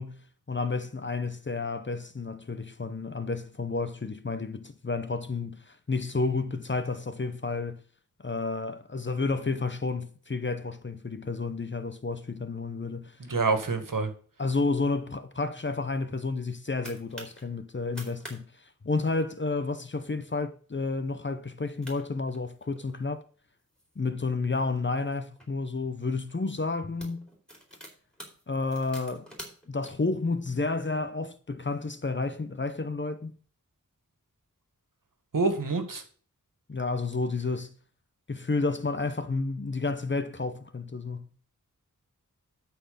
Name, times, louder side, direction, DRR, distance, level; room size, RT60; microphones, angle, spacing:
voice 1, 0.0-7.8 8.2-13.2 14.4-23.2 24.0-27.3 28.5-29.3 29.7-33.3 36.7-37.7 38.3-41.3, left 3 dB, 35° left, 0.9 m, -31 dB
voice 2, 13.3-14.1 35.3-36.0, right 4 dB, 75° right, 2.0 m, -26 dB
sound 1, 16.3-17.4 17.8-18.4 18.6-18.7 19.1-19.4 20.0-20.2 20.7-20.8 21.5-21.6 21.8-23.0 23.6-25.5 26.2-26.4 26.7-29.9, equal, 5° left, 4.3 m, -47 dB
12.5 x 4.6 x 6.9 m
wide cardioid pair, 90°, 33 cm